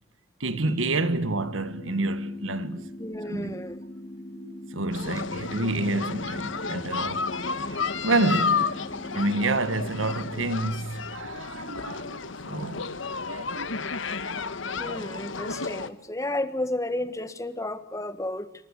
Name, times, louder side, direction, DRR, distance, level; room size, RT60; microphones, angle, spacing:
voice 1, 0.4-2.9 3.3-3.6 4.3-7.3 7.7-8.8 9.1-12.9 13.2-13.9, right 2 dB, 80° right, 1.7 m, -29 dB
sound 1, 0.5-10.5, left 1 dB, 35° left, 1.1 m, -41 dB
voice 2, 3.0-3.8 7.7-7.8 14.8-18.5, left 1 dB, 15° left, 1.7 m, -32 dB
sound 2, 4.9-15.9, left 4 dB, 70° left, 1.5 m, -32 dB
28.0 x 24.0 x 8.4 m
head